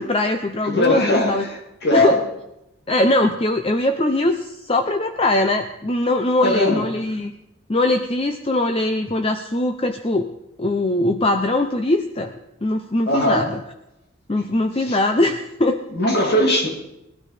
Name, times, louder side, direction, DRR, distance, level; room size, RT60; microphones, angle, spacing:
voice 1, 0.0-1.4 1.9-2.2 2.9-7.3 7.7-10.3 10.6-12.3 12.6-13.6 14.3-15.8 16.2-16.3, left 2 dB, 25° left, 6 dB, 0.7 m, -21 dB
voice 2, 0.6-2.2 6.4-6.8 13.1-13.5 14.8-15.0 15.9-16.7, left 1 dB, 50° left, 1 dB, 2.6 m, -20 dB
20.0 x 13.0 x 5.0 m, 0.87 s
head